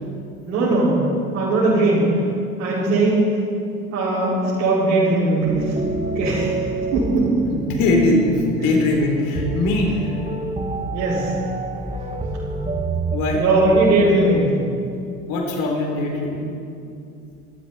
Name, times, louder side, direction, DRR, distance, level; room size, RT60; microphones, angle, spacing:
voice 1, 0.4-1.0 1.3-2.1 2.6-3.2 3.9-5.8 6.1-6.5 6.9-7.3 10.9-11.3 13.4-14.5, right 2 dB, 75° right, -11 dB, 5.3 m, -19 dB
sound 1, 5.4-13.2, right 3 dB, 15° right, 1.7 m, -28 dB
voice 2, 7.5-10.2 13.1-13.5 14.0-14.1 15.3-16.6, left 2 dB, 55° left, 1 dB, 4.0 m, -21 dB
25.0 x 12.5 x 4.4 m, 2.5 s
figure-of-eight pair, 70°, 40 cm